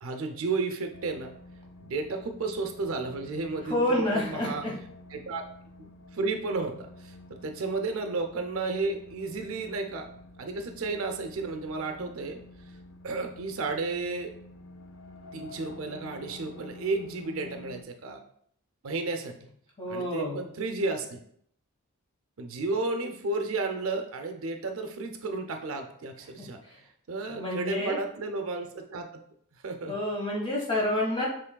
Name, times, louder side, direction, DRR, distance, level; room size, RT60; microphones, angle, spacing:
voice 1, 0.0-1.3 1.8-3.8 4.1-4.6 5.1-5.4 5.8-10.1 10.4-12.4 13.0-14.3 15.3-18.2 18.8-19.4 19.9-21.2 22.4-26.6 27.1-29.1 29.6-29.9, right 3 dB, 70° right, 5 dB, 0.5 m, -32 dB
sound 1, 0.9-17.8, left 2 dB, 60° left, 0.4 m, -49 dB
voice 2, 3.6-4.8 19.8-20.4 26.4-26.8 27.3-28.0 29.9-31.3, left 1 dB, 20° left, -3 dB, 1.2 m, -29 dB
6.8 x 3.1 x 2.2 m, 0.66 s
head